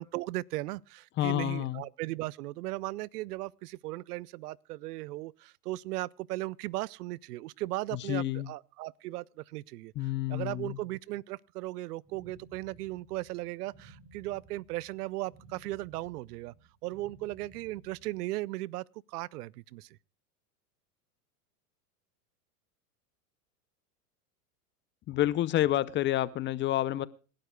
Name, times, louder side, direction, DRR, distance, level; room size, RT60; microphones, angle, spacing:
voice 1, 0.0-9.9 10.3-16.5 16.8-19.9, right 18 dB, 75° right, 0.6 m, -37 dB
voice 2, 1.2-1.8 7.9-8.5 10.0-10.8 25.1-27.1, left 14 dB, 25° left, 0.5 m, -29 dB
sound 1, 12.0-18.4, right 3 dB, 15° right, 6.8 m, -57 dB
26.5 x 11.5 x 2.2 m
supercardioid pair, 125°, 47 cm